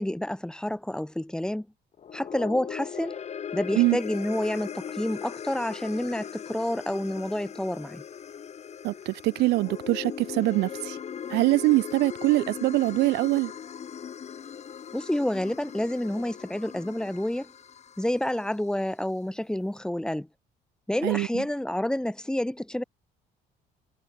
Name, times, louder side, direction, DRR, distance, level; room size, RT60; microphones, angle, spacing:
voice 1, 0.0-1.7 2.1-3.2 3.5-8.0 14.9-17.5 18.0-20.3 20.9-22.8, left 1 dB, 5° left, 2.9 m, -29 dB
sound 1, 1.9-18.4, left 8 dB, 40° left, 2.0 m, -39 dB
voice 2, 8.8-11.0 11.3-13.5 21.0-21.4, right 20 dB, 80° right, 0.4 m, -23 dB
cardioid pair, 110°, 17 cm